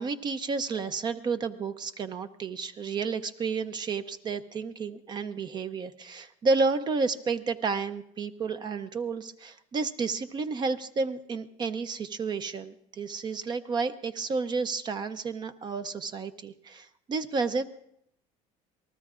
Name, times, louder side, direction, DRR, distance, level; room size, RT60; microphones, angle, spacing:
voice 1, 0.0-17.6, right 4 dB, 30° right, 11 dB, 0.6 m, -31 dB
27.5 x 19.0 x 2.4 m, 0.74 s
cardioid pair, 145°, 15 cm